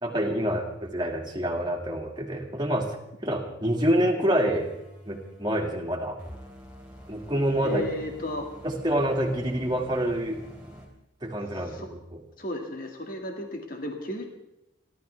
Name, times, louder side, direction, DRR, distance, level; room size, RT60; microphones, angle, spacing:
voice 1, 0.0-3.0 3.2-4.7 5.1-6.2 7.1-7.8 8.6-10.4 11.2-12.2, right 1 dB, 25° right, 1 dB, 2.1 m, -27 dB
sound 1, 4.5-10.9, equal, 5° right, 3.5 m, -47 dB
voice 2, 7.6-8.5 11.8-11.9 12.4-14.3, left 1 dB, 45° left, 2 dB, 2.2 m, -33 dB
28.5 x 12.5 x 3.5 m, 0.86 s
head